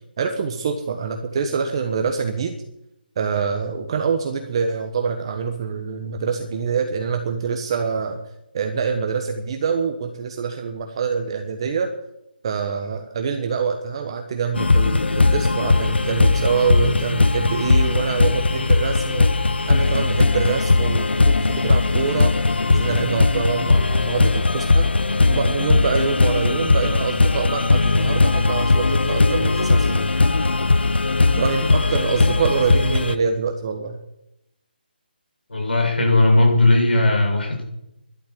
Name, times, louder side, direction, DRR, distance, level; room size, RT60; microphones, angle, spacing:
voice 1, 0.2-2.5 3.2-8.2 8.5-11.9 12.4-24.9 25.3-30.1 31.3-34.0, right 5 dB, 30° right, 4 dB, 1.1 m, -25 dB
sound 1, 14.5-33.1, left 3 dB, 90° left, 0.9 m, -19 dB
voice 2, 35.5-37.6, left 2 dB, 75° left, 1 dB, 7.0 m, -17 dB
12.0 x 11.5 x 8.4 m, 0.86 s
hypercardioid pair, 170°, 6 cm